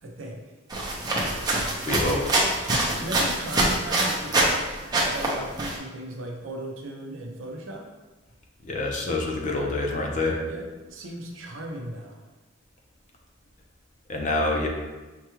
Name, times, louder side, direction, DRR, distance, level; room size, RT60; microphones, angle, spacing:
voice 1, 0.0-0.4 2.4-2.5 3.0-7.9 10.5-12.2, right 1 dB, 75° right, 1 dB, 0.7 m, -37 dB
sound 1, 0.7-4.6 4.9-5.7, right 2 dB, 20° right, 0.6 m, -25 dB
voice 2, 1.9-2.8 8.6-10.4 14.1-14.7, left 2 dB, 40° left, 1 dB, 0.5 m, -27 dB
5.7 x 2.3 x 3.0 m, 1.2 s
head